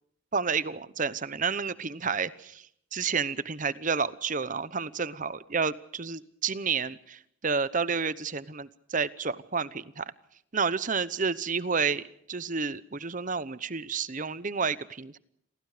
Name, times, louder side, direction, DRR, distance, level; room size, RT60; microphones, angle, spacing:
voice 1, 0.3-10.1 10.5-15.2, right 5 dB, 40° right, 17 dB, 0.9 m, -30 dB
29.0 x 23.0 x 5.0 m, 0.69 s
head